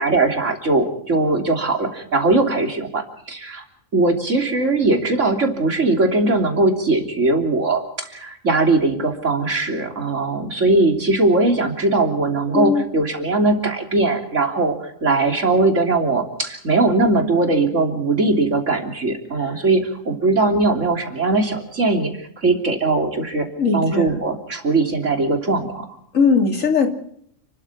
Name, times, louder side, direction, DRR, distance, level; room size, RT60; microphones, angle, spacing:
voice 1, 0.0-3.6 3.9-22.1 22.4-23.5 23.7-25.9, right 2 dB, 70° right, 4 dB, 3.5 m, -20 dB
voice 2, 12.5-12.8 23.6-24.1 26.1-26.9, left 5 dB, 80° left, 5 dB, 3.3 m, -18 dB
30.0 x 13.0 x 7.3 m, 0.67 s
omnidirectional pair, 1.3 m